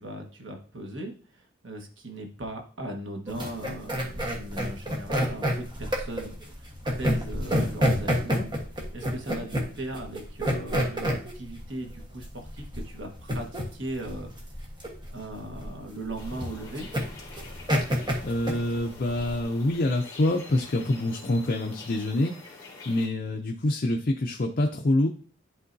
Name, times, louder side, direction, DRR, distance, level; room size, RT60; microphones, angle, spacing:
voice 1, 0.0-6.7 7.0-8.5 8.8-14.3 15.1-16.9, right 1 dB, 70° right, 2 dB, 1.4 m, -38 dB
sound 1, 3.3-19.4, equal, 25° right, 1.2 m, -29 dB
sound 2, 16.2-23.1, left 3 dB, 20° left, 2.1 m, -46 dB
voice 2, 18.2-22.6 22.9-25.1, left 1 dB, 45° left, 3 dB, 0.5 m, -26 dB
11.0 x 3.7 x 2.7 m, 0.42 s
head